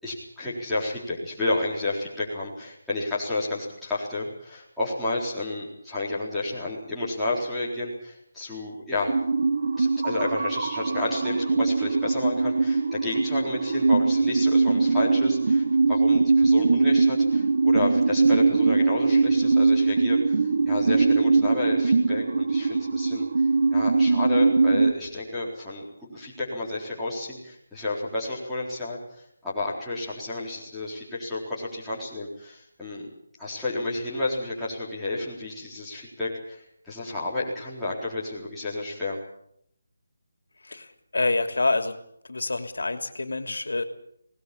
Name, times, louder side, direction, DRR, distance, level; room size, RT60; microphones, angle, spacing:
voice 1, 0.0-9.2 9.8-15.6 15.9-23.3 23.7-33.1 33.4-39.2, left 2 dB, ahead, -11 dB, 4.1 m, -31 dB
sound 1, 9.1-24.9, right 4 dB, 40° right, 1.5 m, -22 dB
voice 2, 40.6-42.0 42.2-43.8, left 2 dB, 80° left, 8 dB, 2.9 m, -27 dB
20.0 x 19.5 x 8.6 m, 0.70 s
figure-of-eight pair, 180°, 0 cm